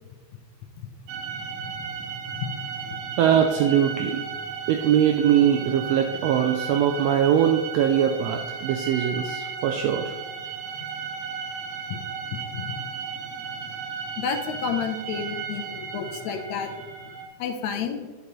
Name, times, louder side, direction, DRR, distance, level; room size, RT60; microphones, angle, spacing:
sound 1, 1.1-17.3, right 6 dB, 60° right, 1.8 m, -35 dB
voice 1, 3.2-4.2 4.7-10.1, right 9 dB, 80° right, 4 dB, 1.5 m, -22 dB
voice 2, 12.3-12.7 14.2-16.7 17.4-18.1, left 7 dB, 75° left, 6 dB, 1.8 m, -30 dB
9.1 x 6.7 x 3.0 m, 1.3 s
omnidirectional pair, 3.4 m